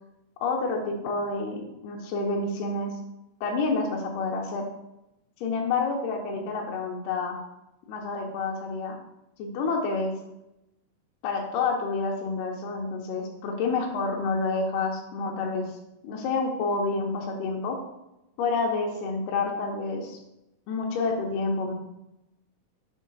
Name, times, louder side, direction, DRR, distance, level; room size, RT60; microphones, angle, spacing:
voice 1, 0.4-2.9 3.4-4.7 5.4-7.4 7.9-9.0 9.4-10.1 11.2-15.7 16.0-17.8 18.4-20.2 20.7-21.7, left 3 dB, 80° left, 0 dB, 1.9 m, -28 dB
6.5 x 3.7 x 5.4 m, 0.88 s
omnidirectional pair, 4.8 m